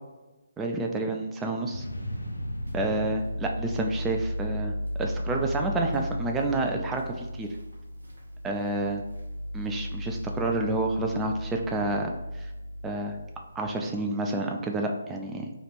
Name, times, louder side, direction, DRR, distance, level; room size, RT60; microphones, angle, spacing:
voice 1, 0.6-1.9 2.7-4.7 5.0-7.5 8.4-9.0 9.5-12.1 12.4-12.5 12.8-13.2 13.6-15.5, right 2 dB, 10° right, 2 dB, 0.3 m, -29 dB
sound 1, 1.7-5.2, left 1 dB, 80° left, 0.5 m, -38 dB
sound 2, 2.4-13.9, equal, 70° right, 0.8 m, -35 dB
3.1 x 2.4 x 4.2 m, 1.1 s
figure-of-eight pair, 140°, 0 cm